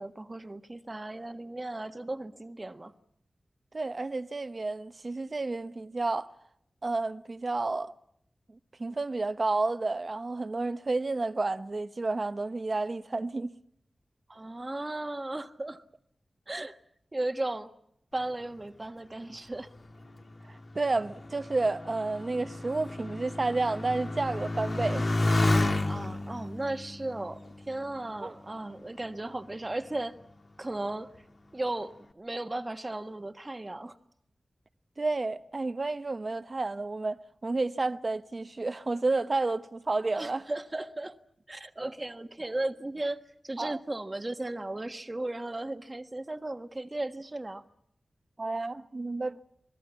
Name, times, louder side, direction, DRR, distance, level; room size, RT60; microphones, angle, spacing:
voice 1, 0.0-2.9 14.3-15.8 16.5-16.8 17.1-17.7 18.1-19.7 25.8-27.4 27.7-30.2 30.6-31.1 31.5-33.9 40.1-41.2 41.5-47.6, right 2 dB, 35° right, 1.4 m, -36 dB
voice 2, 3.7-6.3 6.8-7.9 8.8-13.5 16.6-16.7 20.5-25.1 28.2-28.3 35.0-37.2 37.4-40.4 43.6-43.8 48.4-49.4, right 3 dB, 50° right, 1.0 m, -31 dB
Motorcycle, 19.5-28.5 29.3-29.8, left 2 dB, 55° left, 2.3 m, -32 dB
27.0 x 20.0 x 7.1 m
cardioid pair, 50°, 0 cm